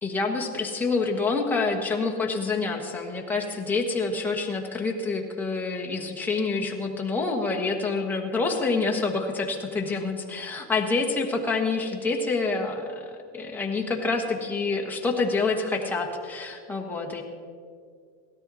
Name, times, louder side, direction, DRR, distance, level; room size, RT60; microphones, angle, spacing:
voice 1, 0.0-17.2, left 3 dB, 5° left, -1 dB, 1.3 m, -27 dB
17.0 x 13.0 x 4.1 m, 2.1 s
supercardioid pair, 160°, 34 cm